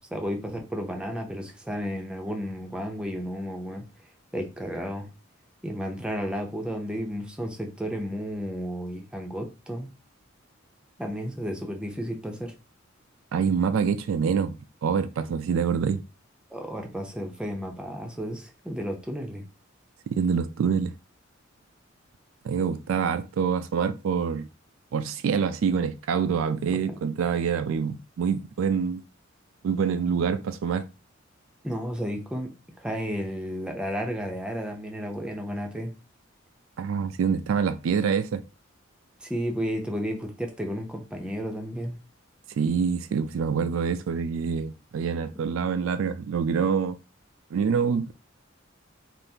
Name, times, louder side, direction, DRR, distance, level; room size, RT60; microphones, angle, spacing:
voice 1, 0.1-3.9 4.3-5.1 5.6-9.9 11.0-12.5 16.5-19.5 26.7-26.8 31.6-32.5 32.8-35.9 39.2-42.0, equal, 5° right, 0.6 m, -32 dB
voice 2, 13.3-16.0 20.1-20.9 22.4-24.5 24.9-29.0 29.6-30.9 36.8-38.4 42.6-47.0 47.5-48.1, right 6 dB, 80° right, 0.3 m, -26 dB
3.5 x 2.5 x 2.7 m
head